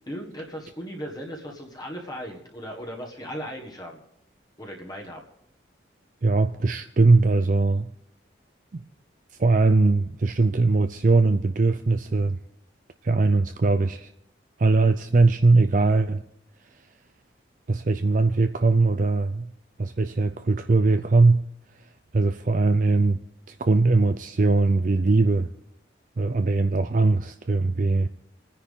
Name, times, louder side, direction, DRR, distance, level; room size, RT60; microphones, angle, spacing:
voice 1, 0.1-4.0 4.6-5.2, equal, 20° left, 1.6 m, -37 dB
voice 2, 6.2-7.9 8.7-8.8 9.4-12.4 13.0-14.1 14.6-16.2 17.7-19.5 19.8-21.4 22.1-23.2 23.5-25.5 26.2-28.1, right 3 dB, 45° right, 0.5 m, -20 dB
29.5 x 10.0 x 3.7 m
head